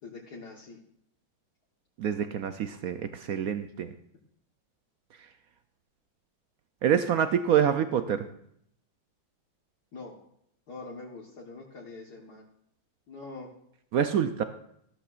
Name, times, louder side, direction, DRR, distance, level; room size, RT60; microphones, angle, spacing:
voice 1, 0.0-0.8 9.9-10.2 10.7-12.4 13.1-13.5, left 3 dB, 55° left, -2 dB, 1.8 m, -44 dB
voice 2, 2.0-3.9 5.1-5.3 6.8-8.3 13.9-14.4, right 8 dB, 80° right, 9 dB, 0.8 m, -26 dB
14.5 x 12.5 x 2.5 m, 0.71 s
omnidirectional pair, 2.2 m